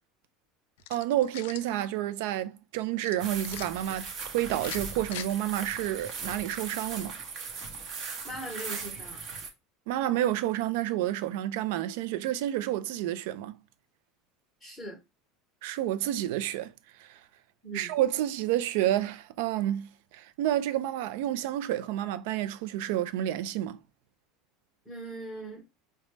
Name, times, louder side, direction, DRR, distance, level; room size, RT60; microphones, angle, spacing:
sound 1, 0.8-1.7 3.0-3.7 4.5-5.3, left 13 dB, 80° left, 0.3 m, -42 dB
voice 1, 0.9-7.2 9.9-13.6 15.6-16.7 17.0-17.2 17.7-23.8, right 13 dB, 65° right, 0.4 m, -30 dB
sound 2, 3.2-9.5, right 4 dB, 35° right, 0.7 m, -39 dB
voice 2, 8.2-9.2 14.6-15.0 17.6-17.9 24.9-25.7, right 2 dB, ahead, 0.9 m, -40 dB
5.1 x 2.1 x 3.2 m
cardioid pair, 175°, 0 cm